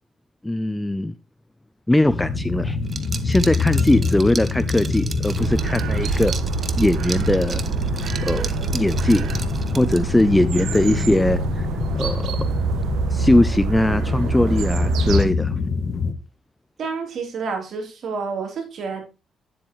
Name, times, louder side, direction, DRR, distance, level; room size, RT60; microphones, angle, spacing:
voice 1, 0.4-1.1 1.9-2.8 3.2-6.3 6.8-7.6 8.2-8.5 8.7-9.2 9.7-11.7 11.9-12.3 13.1-15.6, left 1 dB, 10° left, 14 dB, 0.5 m, -20 dB
sound 1, 2.1-16.1, left 4 dB, 45° left, 1.0 m, -26 dB
Liquid, 2.9-10.3, right 4 dB, 35° right, 0.9 m, -35 dB
sound 2, 5.4-15.2, right 5 dB, 85° right, 0.9 m, -26 dB
voice 2, 16.8-19.0, right 5 dB, 60° right, 3 dB, 3.3 m, -29 dB
9.5 x 7.9 x 3.0 m, 0.28 s
cardioid pair, 85°, 0 cm